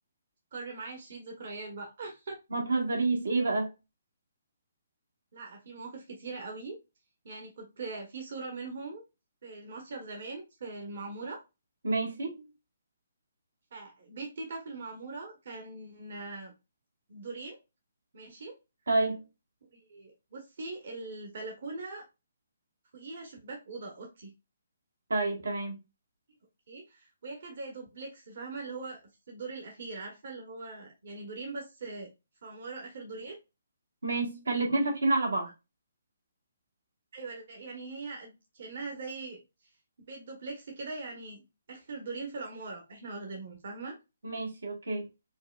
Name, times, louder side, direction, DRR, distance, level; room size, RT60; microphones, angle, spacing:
voice 1, 0.5-2.4 5.3-6.8 7.2-9.0 9.4-11.4 13.7-16.5 17.1-17.6 18.1-18.5 19.7-22.0 22.9-24.3 26.7-32.1 32.4-33.4 37.1-39.4 40.1-41.4 41.7-44.0, right 3 dB, 60° right, 1.0 m, -41 dB
voice 2, 2.5-3.7 11.8-12.4 18.9-19.2 25.1-25.8 34.0-35.5 44.2-45.1, right 2 dB, 80° right, 1.1 m, -29 dB
4.6 x 2.2 x 2.2 m
figure-of-eight pair, 140°, 0 cm